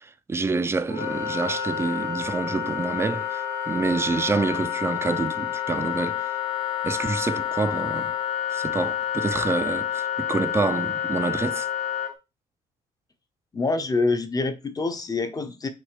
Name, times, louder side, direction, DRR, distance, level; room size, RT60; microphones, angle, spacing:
voice 1, 0.0-6.3 6.8-8.1 8.5-11.7, right 4 dB, 15° right, 0.4 m, -27 dB
Wind instrument woodwind instrument, 0.9-12.1, left 10 dB, 85° left, 2.3 m, -29 dB
voice 2, 13.5-15.7, left 3 dB, 20° left, 0.7 m, -26 dB
6.0 x 2.3 x 3.3 m
cardioid pair, 110°, 17 cm